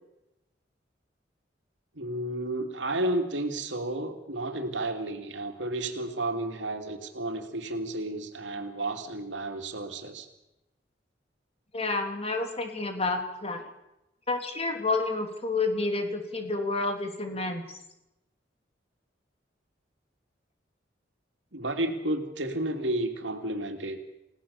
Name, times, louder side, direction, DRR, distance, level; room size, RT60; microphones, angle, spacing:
voice 1, 1.9-10.3 21.5-24.0, right 1 dB, 90° right, 5 dB, 3.0 m, -32 dB
voice 2, 11.7-13.7 14.3-17.6, left 3 dB, 35° left, 4 dB, 3.4 m, -29 dB
30.0 x 17.0 x 7.3 m, 0.91 s
head